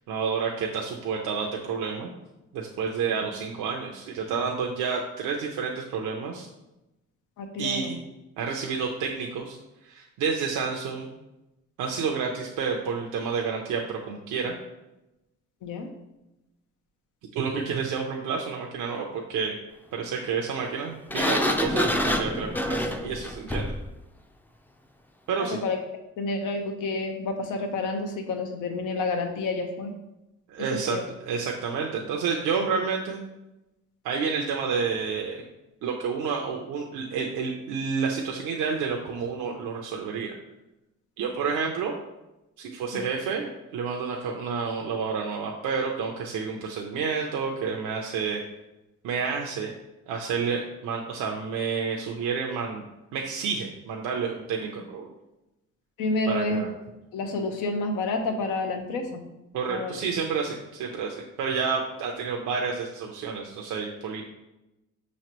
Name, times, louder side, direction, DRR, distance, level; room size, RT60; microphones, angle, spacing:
voice 1, 0.1-2.1 2.5-6.5 7.6-8.0 8.4-9.6 9.8-11.1 11.8-14.5 17.3-19.6 19.9-23.7 25.3-25.6 30.5-31.0 31.2-33.2 34.0-35.4 35.8-40.4 41.2-42.0 42.6-48.4 49.0-49.7 50.1-52.8 53.1-55.1 56.3-56.7 59.5-64.2, right 5 dB, 85° right, 0 dB, 0.6 m, -29 dB
voice 2, 7.4-8.0 15.6-15.9 25.4-25.8 26.2-29.9 30.7-31.0 42.9-43.1 56.0-56.7 57.1-59.2 59.7-60.0, left 2 dB, 90° left, 4 dB, 0.8 m, -29 dB
Sliding door, 21.1-23.9, left 1 dB, 5° left, 0.3 m, -26 dB
5.8 x 3.1 x 2.9 m, 0.95 s
cardioid pair, 90°, 30 cm